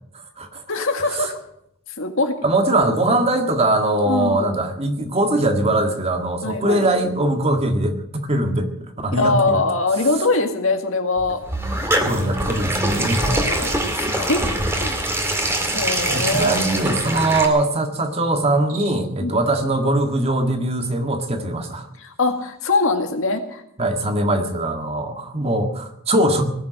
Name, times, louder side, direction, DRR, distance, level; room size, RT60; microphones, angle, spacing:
voice 1, 0.1-0.6 1.1-1.3 2.4-9.6 12.1-13.3 16.1-21.9 23.8-26.4, right 1 dB, 30° right, 5 dB, 1.8 m, -21 dB
voice 2, 0.7-1.4 2.0-2.4 4.0-4.5 6.4-6.9 9.1-11.4 13.2-15.0 15.7-16.6 19.2-19.4 22.0-23.6, left 3 dB, 65° left, 5 dB, 2.0 m, -22 dB
sound 1, 11.2-17.5, right 1 dB, 10° right, 2.2 m, -23 dB
Cricket, 18.5-19.3, right 4 dB, 65° right, 4.4 m, -39 dB
19.5 x 7.2 x 9.7 m, 0.76 s
head